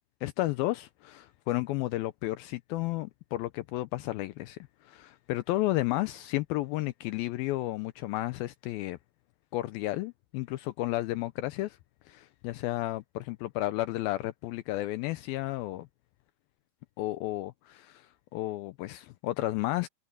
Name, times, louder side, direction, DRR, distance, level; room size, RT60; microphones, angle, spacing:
voice 1, 0.2-9.0 9.5-11.8 12.1-15.9 17.0-19.9, left 17 dB, 90° left, 2.1 m, -32 dB
omnidirectional pair, 5.0 m